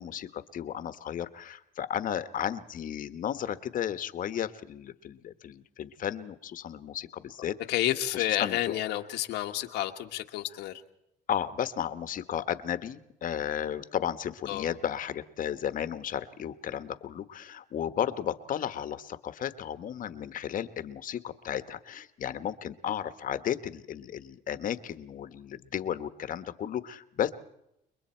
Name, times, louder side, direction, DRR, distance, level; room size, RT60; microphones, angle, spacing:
voice 1, 0.0-7.5 8.1-8.7 11.3-27.3, left 9 dB, 55° left, 12 dB, 1.2 m, -34 dB
voice 2, 7.7-10.8 14.5-14.7, left 14 dB, 85° left, 5 dB, 1.5 m, -30 dB
29.5 x 22.0 x 4.5 m, 0.82 s
cardioid pair, 110°, 17 cm